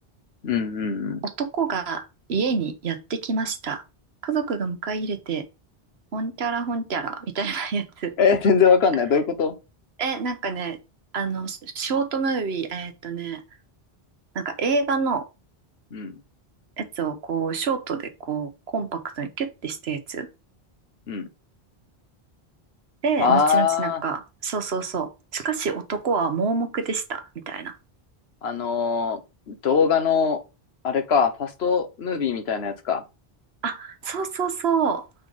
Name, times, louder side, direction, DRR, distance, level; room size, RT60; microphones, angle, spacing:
voice 1, 0.4-1.2 8.2-9.5 15.9-16.1 21.1-21.3 23.2-24.0 28.4-29.2 29.5-30.4 30.8-33.0, left 6 dB, 80° left, 1.2 m, -22 dB
voice 2, 1.2-3.8 4.2-5.4 6.1-8.1 10.0-10.8 11.1-13.4 14.3-15.3 16.8-20.3 23.0-27.7 33.6-35.1, right 5 dB, 80° right, 1.3 m, -27 dB
5.6 x 3.8 x 5.2 m
omnidirectional pair, 1.0 m